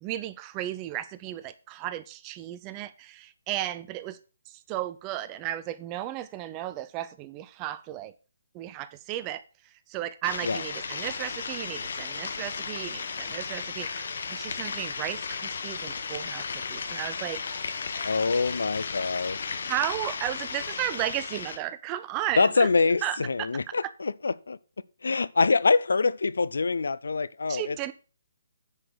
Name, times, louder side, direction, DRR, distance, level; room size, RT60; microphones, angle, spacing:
voice 1, 0.0-4.2 4.5-8.1 8.5-17.4 19.7-22.7 23.0-23.9 27.5-27.9, right 13 dB, 20° right, 0.6 m, -34 dB
sound 1, 10.2-21.6, left 5 dB, 60° left, 1.2 m, -35 dB
voice 2, 18.0-19.6 22.4-24.6 25.0-27.9, left 4 dB, 85° left, 0.5 m, -25 dB
9.7 x 5.0 x 6.2 m
hypercardioid pair, 160°, 0 cm